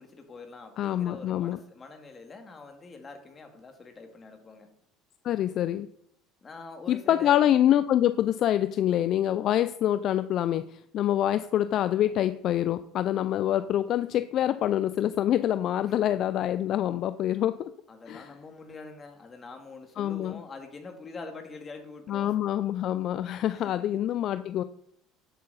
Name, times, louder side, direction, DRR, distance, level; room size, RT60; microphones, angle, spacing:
voice 1, 0.0-4.7 6.4-7.4 15.8-16.0 17.9-22.4 23.5-23.9, left 3 dB, 30° left, 4 dB, 2.3 m, -45 dB
voice 2, 0.8-1.6 5.2-5.9 6.9-17.7 18.1-18.3 20.0-20.4 22.1-24.6, left 11 dB, 55° left, 13 dB, 0.4 m, -26 dB
10.0 x 8.0 x 4.1 m, 0.70 s
hypercardioid pair, 80°, 0 cm